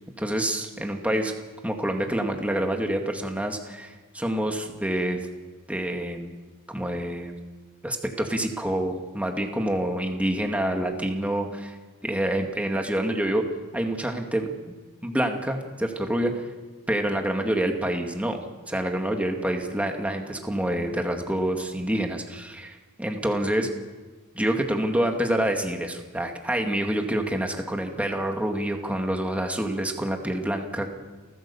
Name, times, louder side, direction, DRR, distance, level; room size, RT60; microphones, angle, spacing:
voice 1, 0.2-1.3 1.6-5.2 5.7-6.3 6.7-7.3 7.8-11.8 12.0-13.4 13.7-14.7 15.0-16.5 16.9-18.4 18.7-23.7 24.3-30.9, right 1 dB, 5° right, 3 dB, 2.1 m, -27 dB
30.0 x 14.5 x 7.1 m, 1.3 s
head